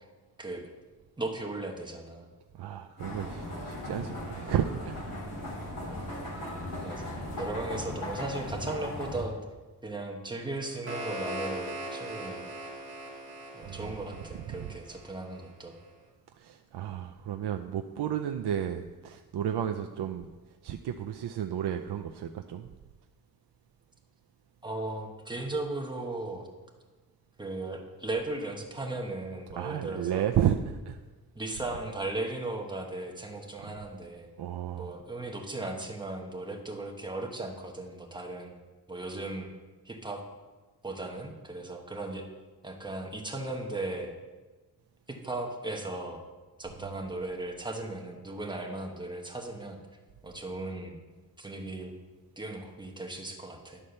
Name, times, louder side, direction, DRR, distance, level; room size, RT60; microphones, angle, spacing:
voice 1, 1.2-2.3 5.9-6.0 6.8-9.4 9.8-12.5 13.5-15.8 24.6-26.5 27.4-30.3 31.3-34.3 34.7-38.5 38.9-39.5 39.8-40.2 40.8-42.2 42.6-44.1 45.1-46.2 46.6-49.8 50.2-51.0 51.4-51.9 52.4-53.8, right 2 dB, 10° right, 1 dB, 1.1 m, -37 dB
voice 2, 2.5-5.2 6.8-7.2 13.6-14.8 16.3-20.3 20.6-22.7 29.6-31.0 33.6-33.7 34.4-35.0 46.8-46.9, right 9 dB, 85° right, 6 dB, 0.5 m, -33 dB
sound 1, 3.0-9.2, left 1 dB, 55° left, 2.8 m, -37 dB
sound 2, 10.5-15.5, right 1 dB, 30° right, 1.6 m, -40 dB
11.0 x 4.3 x 6.6 m, 1.3 s
wide cardioid pair, 165°, 39 cm